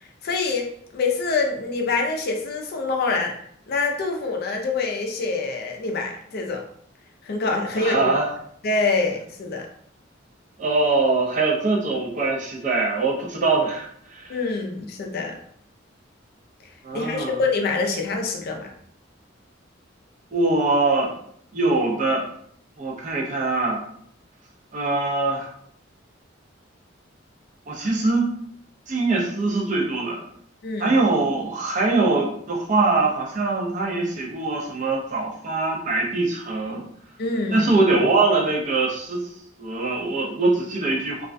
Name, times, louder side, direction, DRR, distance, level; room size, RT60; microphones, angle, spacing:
voice 1, 0.0-3.3 3.7-6.6 7.2-8.1 8.6-9.7 14.3-15.4 16.9-18.7 30.6-30.9 37.2-37.7, left 3 dB, 55° left, 2 dB, 0.4 m, -25 dB
voice 2, 7.8-8.3 10.6-14.3 16.8-17.4 20.3-21.1 21.5-22.2 22.8-23.9 24.7-25.5 27.7-28.3 28.9-30.2 30.8-36.8 37.5-39.3 39.6-41.2, right 3 dB, 40° right, -2 dB, 0.5 m, -22 dB
2.3 x 2.1 x 2.4 m, 0.66 s
head